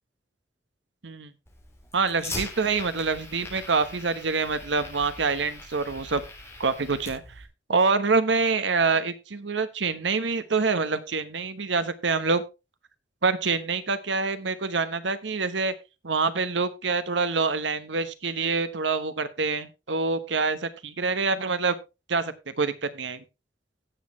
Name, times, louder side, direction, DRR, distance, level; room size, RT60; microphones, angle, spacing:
Fire, 1.5-7.5, left 2 dB, 15° left, 3.0 m, -41 dB
voice 1, 1.9-6.2 6.6-7.2 7.7-12.4 13.2-15.7 16.0-21.8 22.1-23.2, right 4 dB, 85° right, 12 dB, 1.1 m, -26 dB
17.0 x 6.4 x 3.1 m, 0.26 s
head